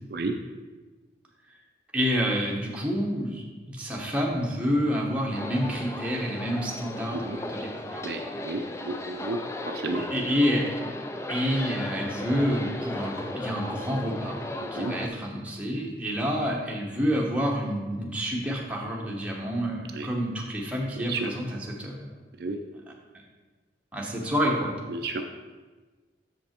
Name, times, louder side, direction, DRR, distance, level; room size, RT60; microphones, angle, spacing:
voice 1, 1.9-8.3 10.0-10.7 11.3-14.4 14.7-22.0 22.7-22.8 23.9-24.7, equal, 5° right, -2 dB, 1.0 m, -28 dB
sound 1, 5.3-15.1, left 1 dB, 15° left, 0.3 m, -36 dB
voice 2, 8.0-9.4 9.7-10.0 14.8-14.9 19.9-20.1 21.1-21.3 22.4-22.6 24.9-25.2, right 3 dB, 55° right, 5 dB, 0.4 m, -31 dB
6.7 x 5.3 x 4.4 m, 1.3 s
head